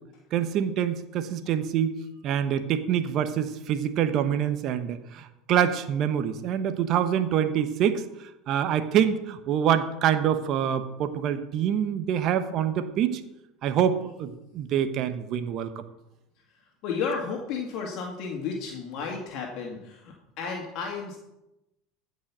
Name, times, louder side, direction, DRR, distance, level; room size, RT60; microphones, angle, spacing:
voice 1, 0.3-1.9 2.2-8.0 8.5-13.2 13.6-15.7, right 9 dB, 50° right, 10 dB, 1.1 m, -25 dB
voice 2, 16.5-21.2, left 5 dB, 55° left, 0 dB, 2.1 m, -33 dB
15.5 x 5.5 x 6.1 m, 0.91 s
hypercardioid pair, 85°, 0 cm